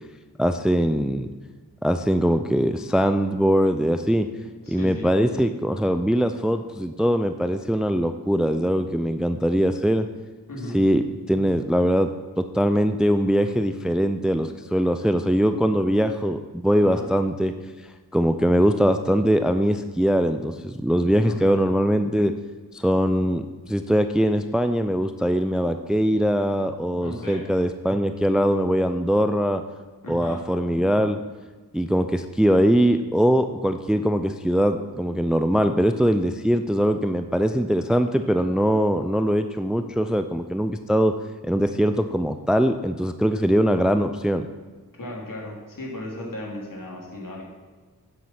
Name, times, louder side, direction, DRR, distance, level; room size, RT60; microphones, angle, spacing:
voice 1, 0.4-1.3 1.8-4.3 4.7-10.1 10.7-12.1 12.4-17.5 18.1-22.3 22.7-29.6 30.1-31.2 31.7-41.2 41.4-44.5, equal, ahead, 9 dB, 0.5 m, -22 dB
voice 2, 4.6-5.1 10.5-10.8 16.8-17.1 21.3-21.5 27.0-27.5 30.0-30.4 45.0-47.4, left 1 dB, 55° left, -3 dB, 3.3 m, -35 dB
9.3 x 7.4 x 5.8 m, 1.3 s
cardioid pair, 45°, 38 cm